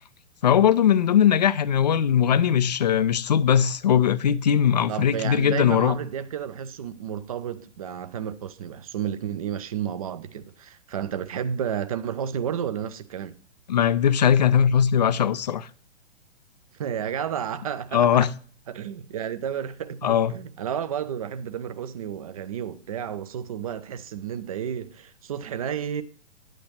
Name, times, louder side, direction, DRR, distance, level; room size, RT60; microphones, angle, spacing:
voice 1, 0.4-6.0 13.7-15.7 17.9-18.3 20.0-20.3, left 8 dB, 35° left, 0.4 m, -20 dB
voice 2, 4.9-13.4 16.8-18.3 18.7-26.0, right 8 dB, 30° right, 0.5 m, -31 dB
9.2 x 9.1 x 2.9 m
figure-of-eight pair, 120°, 37 cm